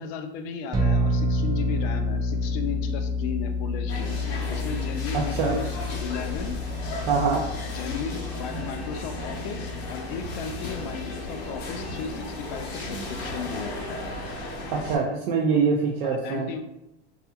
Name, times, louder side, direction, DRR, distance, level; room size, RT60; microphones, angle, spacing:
voice 1, 0.0-4.2 4.5-6.6 7.7-14.2 16.0-16.6, left 6 dB, 60° left, 6 dB, 0.5 m, -35 dB
sound 1, 0.7-14.2, left 1 dB, 15° right, 0.4 m, -30 dB
sound 2, 3.9-15.0, left 1 dB, 80° left, 0.8 m, -35 dB
voice 2, 5.1-5.6 7.1-7.4 14.7-16.5, right 5 dB, 70° right, -1 dB, 0.5 m, -24 dB
2.4 x 2.4 x 2.7 m, 0.88 s
supercardioid pair, 115°, 31 cm